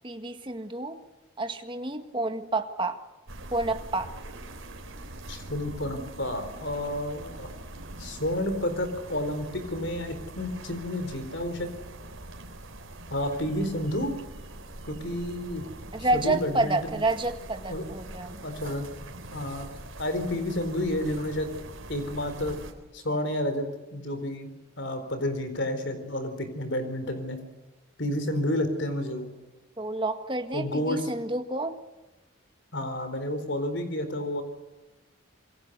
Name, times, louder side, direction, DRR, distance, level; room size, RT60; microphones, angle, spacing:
voice 1, 0.0-1.0 1.4-3.0 3.5-4.1 15.9-18.4 29.8-31.8, right 2 dB, 25° right, 7 dB, 1.7 m, -29 dB
sound 1, 3.3-22.7, right 1 dB, 75° right, 3.9 m, -43 dB
voice 2, 5.3-7.5 8.0-11.7 13.1-14.1 14.9-15.7 16.1-17.0 17.7-17.8 18.4-18.9 19.3-19.7 20.0-21.5 21.9-22.6 22.9-24.5 24.8-27.4 28.0-29.3 30.5-31.1 32.7-34.4, left 1 dB, 55° left, 9 dB, 4.3 m, -30 dB
27.0 x 23.0 x 6.8 m, 1.1 s
head